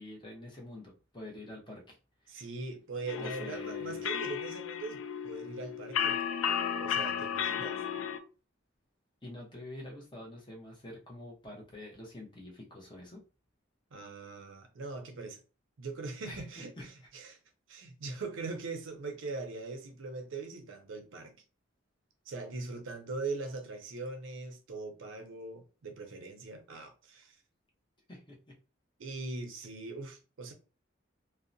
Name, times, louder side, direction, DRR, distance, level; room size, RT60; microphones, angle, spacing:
voice 1, 0.0-2.0 2.2-2.3 3.1-4.0 9.2-13.2 16.2-16.9 28.1-28.4, left 1 dB, 25° left, 0.7 m, -46 dB
voice 2, 2.3-6.2 6.8-7.8 13.9-15.4 15.8-17.4 17.7-21.3 22.3-27.4 29.0-30.5, right 3 dB, 75° right, 0.5 m, -41 dB
sound 1, 3.1-8.2, left 8 dB, 90° left, 0.4 m, -34 dB
2.7 x 2.0 x 2.5 m
head